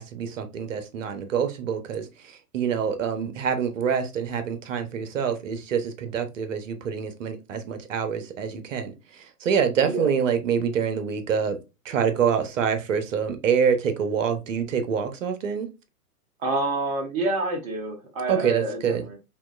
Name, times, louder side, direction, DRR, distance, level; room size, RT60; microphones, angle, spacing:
voice 1, 0.0-11.6 11.8-15.7 18.3-19.0, right 7 dB, 55° right, 0.9 m, -26 dB
voice 2, 16.4-19.2, right 2 dB, 15° right, 0.6 m, -28 dB
5.5 x 2.5 x 2.4 m
figure-of-eight pair, 110°, 47 cm